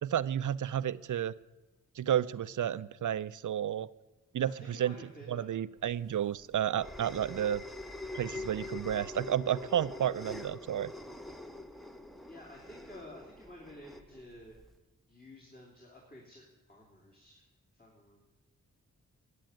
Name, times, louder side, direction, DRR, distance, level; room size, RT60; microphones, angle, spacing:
voice 1, 0.0-1.3 2.0-3.9 4.3-5.0 5.3-7.6 8.1-10.9, right 10 dB, 65° right, 17 dB, 0.5 m, -31 dB
voice 2, 4.5-5.5 11.7-11.8 12.3-14.6 15.1-17.5 17.7-18.2, left 1 dB, 30° left, -2 dB, 3.3 m, -52 dB
sound 1, 5.9-14.7, left 2 dB, ahead, 0.9 m, -45 dB
13.0 x 8.4 x 9.1 m, 1.1 s
cardioid pair, 60°, 33 cm